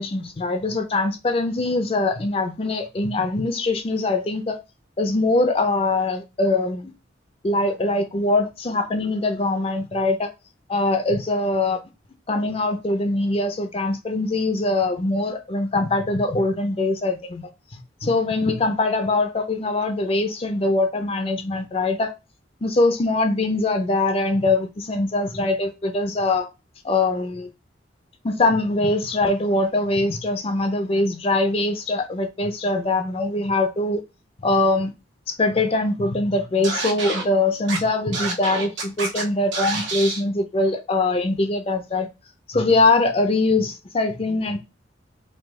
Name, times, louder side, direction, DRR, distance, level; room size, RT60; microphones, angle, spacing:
voice 1, 0.0-4.6 5.0-6.9 7.4-10.3 10.7-11.8 12.3-17.5 18.0-22.1 22.6-26.5 26.8-27.5 28.2-34.0 34.4-34.9 35.3-42.1 42.5-44.6, left 2 dB, 30° left, 0.5 m, -22 dB
Scratching (performance technique), 36.6-37.2 37.7-37.8 38.1-39.2 39.5-40.2, right 3 dB, 80° right, 1.4 m, -27 dB
4.8 x 2.3 x 3.6 m
head